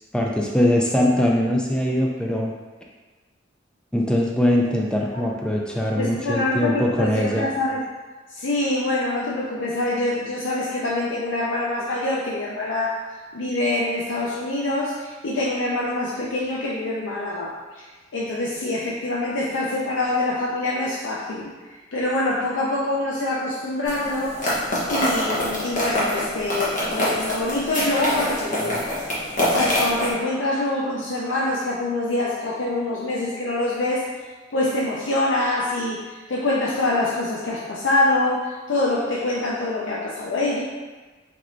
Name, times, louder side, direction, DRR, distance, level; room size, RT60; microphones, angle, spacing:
voice 1, 0.1-2.5 3.9-7.5, left 1 dB, 5° left, -2 dB, 0.3 m, -21 dB
voice 2, 5.9-7.8 8.3-13.0 13.3-17.8 18.1-24.4 24.9-28.9 29.5-34.0 34.5-40.6, left 2 dB, 80° left, -5 dB, 0.5 m, -25 dB
sound 1, 23.9-30.1, left 1 dB, 45° left, 0.9 m, -25 dB
4.5 x 3.0 x 2.5 m, 1.3 s
head